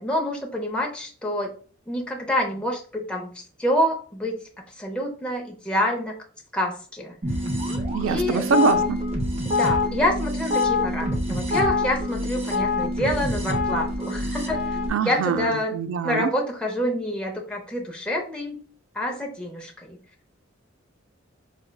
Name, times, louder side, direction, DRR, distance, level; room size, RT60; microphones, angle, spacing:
voice 1, 0.0-1.5 1.9-4.5 4.8-6.2 6.5-7.1 8.1-8.4 9.5-14.6 15.1-15.7 16.0-18.6 18.9-20.0, equal, 5° left, -1 dB, 0.5 m, -27 dB
sound 1, 7.2-14.9, left 2 dB, 35° right, 0.7 m, -25 dB
voice 2, 7.9-9.0 14.9-16.3, right 6 dB, 80° right, 11 dB, 0.3 m, -24 dB
4.9 x 2.1 x 2.2 m, 0.42 s
head